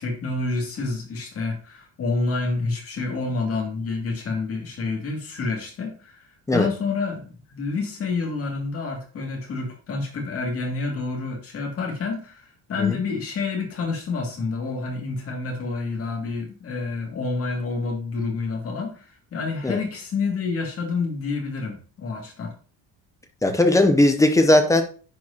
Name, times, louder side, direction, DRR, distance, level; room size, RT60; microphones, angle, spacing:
voice 1, 0.0-22.5, left 3 dB, 30° left, 2.2 m, -28 dB
voice 2, 23.4-24.8, left 1 dB, 10° left, 0.5 m, -18 dB
10.5 x 4.7 x 2.8 m
cardioid pair, 180°, 43 cm